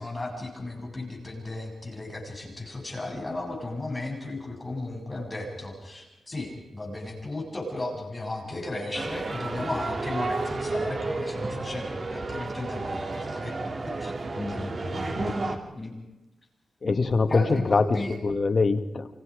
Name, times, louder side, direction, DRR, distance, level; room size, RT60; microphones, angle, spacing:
voice 1, 0.0-13.5 13.8-15.4 15.7-16.0 17.3-18.1, left 2 dB, 20° left, 0 dB, 7.9 m, -35 dB
sound 1, 8.9-15.6, right 3 dB, 45° right, 3.2 m, -32 dB
voice 2, 16.8-17.8 18.2-19.1, left 4 dB, 45° left, 8 dB, 1.8 m, -23 dB
29.5 x 26.5 x 5.1 m, 0.98 s
wide cardioid pair, 100°, 0 cm